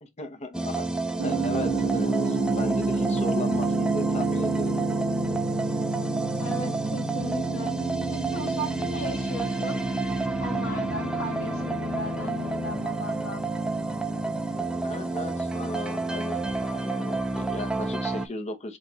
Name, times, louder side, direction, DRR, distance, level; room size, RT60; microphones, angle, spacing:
voice 1, 0.0-0.8 1.2-4.8 14.8-18.8, left 2 dB, 30° left, 0.7 m, -36 dB
sound 1, 0.5-18.3, right 2 dB, 5° right, 0.4 m, -30 dB
sound 2, 1.2-15.9, right 3 dB, 65° right, 1.5 m, -31 dB
voice 2, 6.4-9.8 10.4-13.5, equal, 80° left, 1.3 m, -37 dB
4.7 x 2.4 x 3.8 m
head